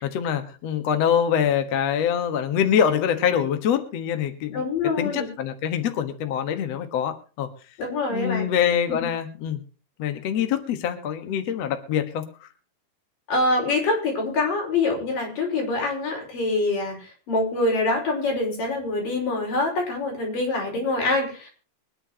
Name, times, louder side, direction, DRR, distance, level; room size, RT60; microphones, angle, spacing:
voice 1, 0.0-4.6 5.0-7.5 8.1-9.6 10.0-12.5, left 8 dB, 55° left, 7 dB, 2.3 m, -24 dB
voice 2, 4.5-5.3 7.8-8.4 9.0-9.1 13.3-21.6, left 2 dB, 85° left, 0 dB, 6.8 m, -25 dB
24.5 x 10.0 x 2.9 m, 0.36 s
omnidirectional pair, 3.8 m